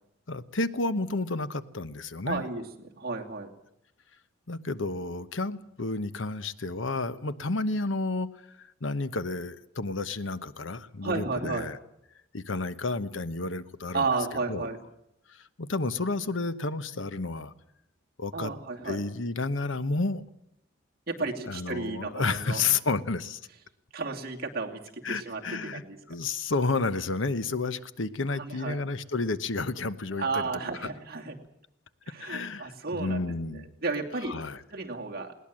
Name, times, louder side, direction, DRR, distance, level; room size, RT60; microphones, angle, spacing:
voice 1, 0.3-2.4 4.5-8.3 8.6-11.8 12.3-14.1 14.5-14.7 15.3-17.5 18.2-18.5 18.8-20.2 21.5-23.4 25.0-25.8 26.1-30.5 30.8-30.9 32.2-33.6 34.3-34.6, left 3 dB, 75° left, 13 dB, 1.0 m, -31 dB
voice 2, 2.2-3.5 11.0-11.7 13.9-14.8 18.3-19.0 21.1-22.6 23.9-26.0 28.3-28.8 30.2-31.3 32.1-34.3 34.7-35.3, right 3 dB, 50° right, 0 dB, 2.7 m, -33 dB
20.5 x 18.5 x 7.6 m, 0.81 s
head